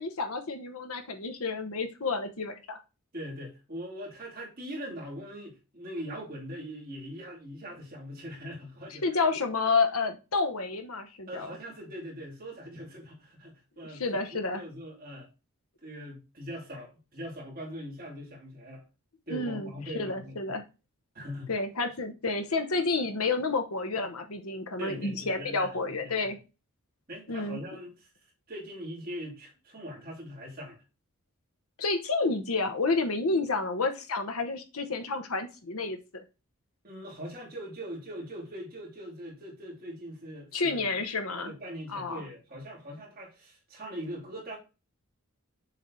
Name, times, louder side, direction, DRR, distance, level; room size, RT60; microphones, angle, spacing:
voice 1, 0.0-2.8 8.9-11.5 13.9-14.6 19.3-20.6 21.5-26.4 27.3-27.6 31.8-36.2 40.5-41.5 41.9-42.2, left 3 dB, 75° left, 1.0 m, -30 dB
voice 2, 3.1-9.0 11.3-15.3 15.8-18.8 19.3-20.6 21.1-21.5 24.8-26.3 27.1-28.1 28.5-30.8 36.8-40.8 41.4-44.6, equal, 40° right, 2.6 m, -41 dB
7.1 x 3.4 x 4.0 m
head